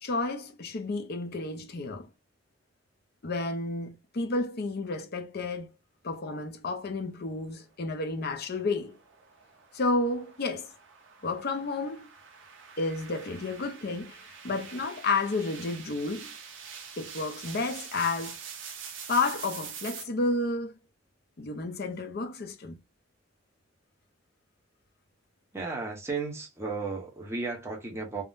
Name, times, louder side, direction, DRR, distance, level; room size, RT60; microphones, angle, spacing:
voice 1, 0.0-2.1 3.2-5.7 6.0-9.0 9.7-10.7 11.2-12.1 12.8-16.3 17.0-18.4 19.1-20.7 21.4-22.8, left 3 dB, 55° left, 0.6 m, -31 dB
sound 1, 8.0-20.0, right 7 dB, 65° right, 0.7 m, -45 dB
voice 2, 25.5-28.2, right 4 dB, 15° right, 0.8 m, -34 dB
3.6 x 2.1 x 2.5 m
head